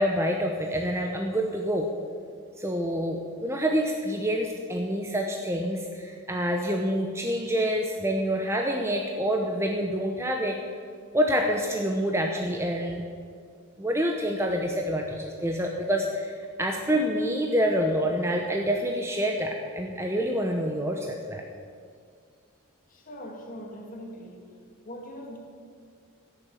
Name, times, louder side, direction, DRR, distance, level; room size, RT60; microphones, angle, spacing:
voice 1, 0.0-1.9 2.6-10.6 11.1-13.0 13.8-21.4, equal, 10° right, 1 dB, 0.8 m, -27 dB
voice 2, 22.9-24.5 24.8-25.4, equal, 40° left, 1 dB, 2.1 m, -41 dB
15.5 x 7.1 x 8.5 m, 2.2 s
head